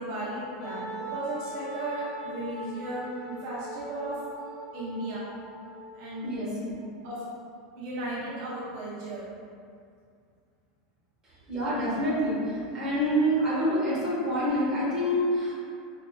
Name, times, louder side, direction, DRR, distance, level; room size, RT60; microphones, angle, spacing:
voice 1, 0.0-4.2 4.7-5.3 5.9-6.2 7.0-7.3 7.7-9.2, right 1 dB, 55° right, -8 dB, 0.7 m, -35 dB
Wind instrument woodwind instrument, 0.6-6.2, right 1 dB, 10° left, 0.8 m, -41 dB
voice 2, 6.2-6.7 11.5-15.5, equal, 20° right, -10 dB, 1.2 m, -27 dB
5.0 x 2.9 x 2.3 m, 2.3 s
supercardioid pair, 165°, 3 cm